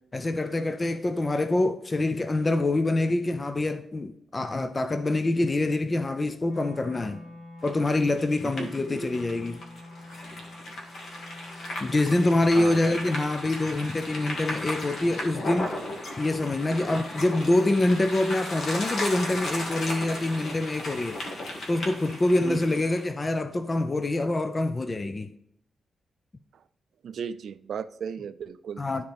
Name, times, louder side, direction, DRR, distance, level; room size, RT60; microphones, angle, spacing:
voice 1, 0.1-7.2 7.6-9.6 11.8-15.7 16.2-21.2 21.7-25.3 28.8-29.1, left 2 dB, 20° left, 0.4 m, -25 dB
Wind instrument woodwind instrument, 6.4-12.4, left 2 dB, 85° left, 3.6 m, -47 dB
sound 1, 7.6-23.1, left 1 dB, 60° left, 1.9 m, -36 dB
voice 2, 27.0-28.8, right 7 dB, 65° right, 0.4 m, -35 dB
13.0 x 4.6 x 3.4 m
wide cardioid pair, 165°, 0 cm